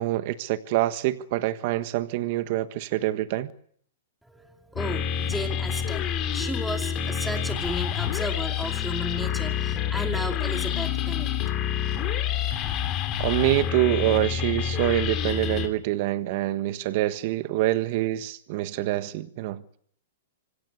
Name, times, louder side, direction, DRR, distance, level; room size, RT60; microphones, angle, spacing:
voice 1, 0.0-3.5 12.5-12.7 13.2-19.6, right 15 dB, 40° right, 1.3 m, -26 dB
voice 2, 4.2-11.3, equal, ahead, 2.6 m, -34 dB
sound 1, 4.8-15.7, left 9 dB, 25° left, 3.0 m, -28 dB
25.5 x 16.5 x 9.6 m
hypercardioid pair, 160°, 0 cm